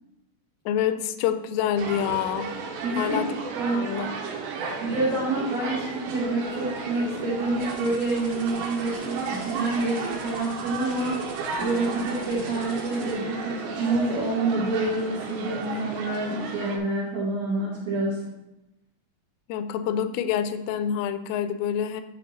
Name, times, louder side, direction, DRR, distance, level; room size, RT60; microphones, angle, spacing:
voice 1, 0.7-2.5 3.0-3.3 3.7-4.1 19.5-22.0, left 9 dB, 90° left, 11 dB, 3.1 m, -27 dB
sound 1, 1.8-16.8, right 5 dB, 90° right, 3.4 m, -34 dB
voice 2, 2.8-3.2 3.6-4.0 4.8-18.2, right 2 dB, 70° right, -7 dB, 1.7 m, -27 dB
sound 2, 7.6-13.1, right 2 dB, 50° right, 1.8 m, -45 dB
Telephone, 11.7-13.7, left 1 dB, 10° left, 0.8 m, -45 dB
11.0 x 3.8 x 3.8 m, 0.92 s
omnidirectional pair, 5.7 m